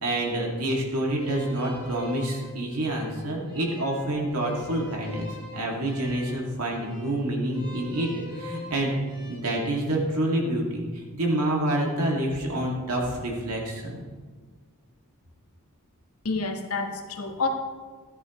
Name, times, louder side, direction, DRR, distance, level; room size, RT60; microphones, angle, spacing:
voice 1, 0.0-9.0 9.3-14.0, right 1 dB, 80° right, -1 dB, 2.4 m, -27 dB
sound 1, 1.1-9.4, left 2 dB, 20° right, 2.9 m, -44 dB
voice 2, 16.2-17.5, left 4 dB, 75° left, 3 dB, 1.4 m, -28 dB
14.0 x 10.5 x 3.2 m, 1.5 s
head